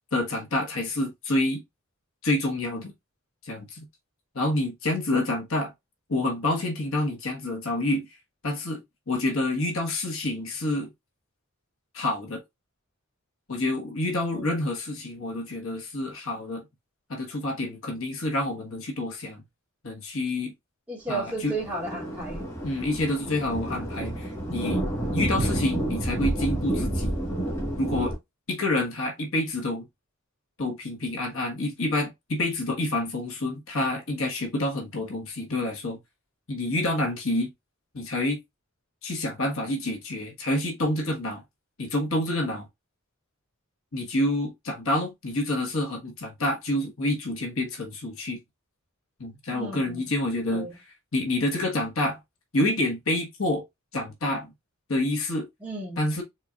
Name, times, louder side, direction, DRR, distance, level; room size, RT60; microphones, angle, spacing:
voice 1, 0.1-1.6 2.2-2.9 3.4-3.8 4.3-5.7 6.1-8.0 8.4-8.8 9.1-10.9 11.9-12.4 13.5-16.6 17.1-19.4 19.8-20.5 21.1-21.5 22.6-24.8 25.1-27.2 27.8-28.1 28.5-29.9 30.6-36.0 36.5-37.5 37.9-38.4 39.0-41.4 41.8-42.7 43.9-48.4 49.2-50.7 51.1-52.2 52.5-53.6 53.9-54.5 54.9-55.5 56.0-56.2, left 1 dB, 65° left, 1.5 m, -28 dB
voice 2, 20.9-22.4 49.5-50.1 50.5-50.7 55.6-56.1, right 3 dB, 5° right, 2.6 m, -34 dB
Thunder, 21.3-28.2, right 1 dB, 10° left, 1.7 m, -29 dB
4.5 x 3.9 x 2.4 m
head